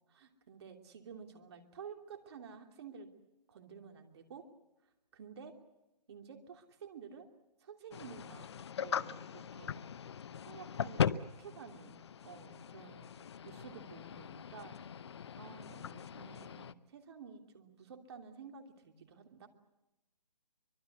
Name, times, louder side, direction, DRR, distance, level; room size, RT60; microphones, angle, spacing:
voice 1, 0.1-3.1 3.5-4.5 5.1-5.5 6.1-7.3 7.6-8.5 8.8-9.8 10.5-12.0 12.2-13.1 13.4-19.5, right 6 dB, 40° right, 4 dB, 3.0 m, -51 dB
sound 1, 7.9-16.7, left 8 dB, 40° left, 0.8 m, -40 dB
24.5 x 22.0 x 8.1 m, 0.95 s
hypercardioid pair, 160°, 21 cm